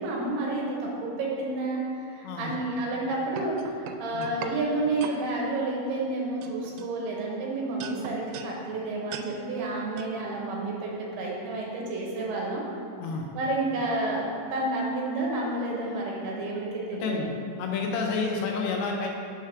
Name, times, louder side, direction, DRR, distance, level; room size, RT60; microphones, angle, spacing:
voice 1, 0.0-12.6 13.4-17.3, right 2 dB, 75° right, -3 dB, 2.6 m, -30 dB
voice 2, 2.2-2.5 4.1-4.3 13.0-13.3 17.0-17.3 17.6-19.1, left 4 dB, 80° left, 1 dB, 2.8 m, -29 dB
sound 1, 2.9-4.6 5.0-5.2 5.9-6.1 6.4-7.4 7.8-8.5 9.1-9.3 10.0-10.1, right 8 dB, 90° right, 3.0 m, -40 dB
6.4 x 4.7 x 5.7 m, 2.6 s
omnidirectional pair, 5.4 m